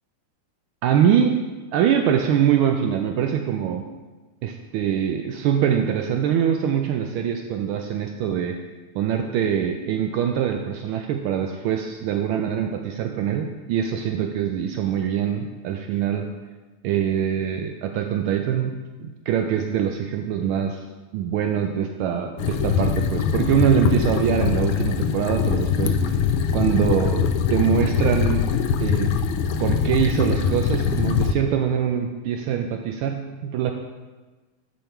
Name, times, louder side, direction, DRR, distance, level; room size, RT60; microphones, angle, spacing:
voice 1, 0.8-1.4 1.7-3.8 4.4-8.6 8.9-16.3 16.8-18.7 19.0-20.8 21.1-26.2 26.5-28.5 28.8-29.1 29.6-33.7, right 9 dB, 80° right, 4 dB, 1.4 m, -23 dB
sound 1, 22.4-31.3, left 7 dB, 75° left, 1.4 m, -22 dB
8.5 x 5.4 x 4.4 m, 1.3 s
omnidirectional pair, 2.4 m